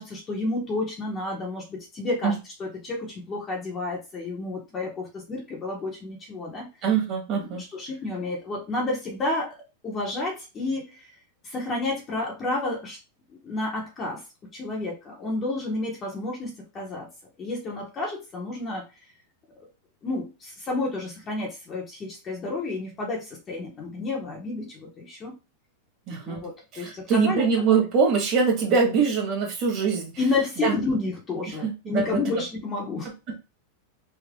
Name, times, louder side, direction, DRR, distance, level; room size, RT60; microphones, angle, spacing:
voice 1, 0.0-6.7 7.4-9.6 9.8-11.1 11.4-13.0 13.3-14.2 14.5-17.1 17.4-18.8 20.0-25.3 26.2-27.8 30.2-33.4, left 2 dB, 20° left, -1 dB, 1.1 m, -31 dB
voice 2, 6.8-7.6 26.1-26.5 26.7-30.1 30.6-30.7 31.6-32.2, right 5 dB, 35° right, 0 dB, 1.8 m, -23 dB
3.6 x 2.5 x 3.7 m, 0.28 s
supercardioid pair, 155°, 0 cm